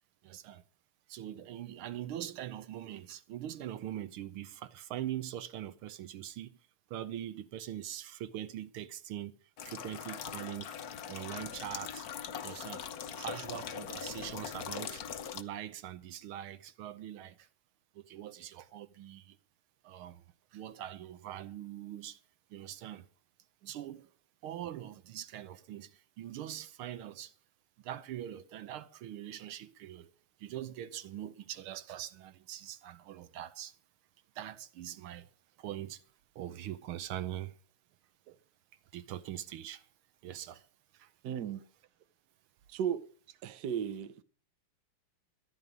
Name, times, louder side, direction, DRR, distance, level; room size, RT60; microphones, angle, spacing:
voice 1, 0.2-0.6 1.1-6.6 6.9-9.3 9.6-12.1 12.4-12.8 13.2-17.5 17.9-19.4 19.8-20.2 20.5-22.2 22.5-23.1 23.6-24.1 24.4-27.3 27.8-30.1 30.4-33.8 34.3-35.3 35.6-36.0 36.3-37.5 38.3-38.4 38.9-39.9 40.2-40.7 40.9-41.1, right 12 dB, 80° right, 1.6 m, -42 dB
sound 1, 9.6-15.4, left 8 dB, 60° left, 1.1 m, -41 dB
voice 2, 41.2-41.6 42.7-43.0 43.4-44.2, right 8 dB, 60° right, 1.3 m, -35 dB
14.0 x 11.0 x 5.1 m
omnidirectional pair, 2.4 m